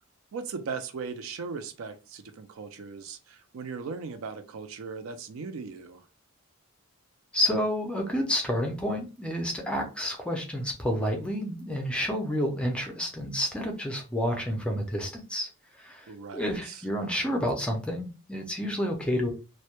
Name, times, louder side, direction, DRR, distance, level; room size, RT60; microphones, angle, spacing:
voice 1, 0.3-6.0 16.1-16.8, right 5 dB, 60° right, 0.4 m, -38 dB
voice 2, 7.3-15.5 15.8-19.3, equal, 5° left, 0.4 m, -29 dB
2.1 x 2.0 x 2.9 m
head